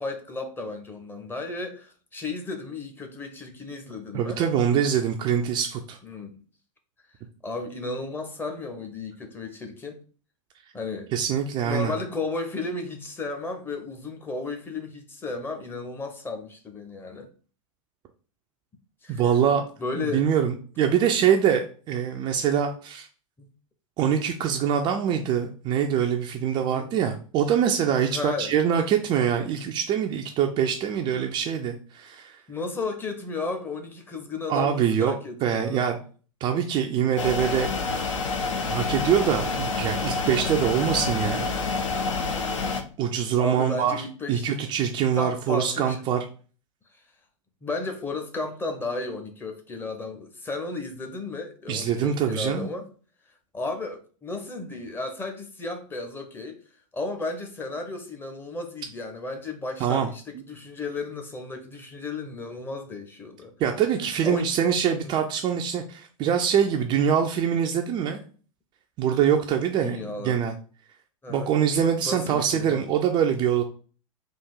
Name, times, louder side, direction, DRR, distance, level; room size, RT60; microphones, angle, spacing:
voice 1, 0.0-4.4 6.0-6.4 7.4-10.0 10.7-11.1 11.6-17.3 19.0-19.2 19.8-20.3 23.4-23.5 26.7-26.9 28.0-28.5 32.5-35.9 43.4-44.6 45.1-46.0 46.9-47.0 47.6-52.9 53.5-56.6 56.9-63.5 64.2-64.5 65.0-65.2 69.8-70.4 71.2-71.5 72.0-72.9, left 3 dB, 10° left, 0.7 m, -34 dB
voice 2, 4.1-6.0 11.1-11.9 19.1-19.7 20.0-23.1 24.0-32.4 34.5-35.1 35.4-36.0 36.4-38.1 38.7-41.6 43.0-46.2 51.7-52.7 59.8-60.1 63.6-68.2 69.0-70.5 71.3-73.6, right 8 dB, 25° right, 0.4 m, -24 dB
sound 1, 37.2-42.8, left 4 dB, 65° left, 0.7 m, -28 dB
3.6 x 2.5 x 4.5 m
figure-of-eight pair, 90°, 17 cm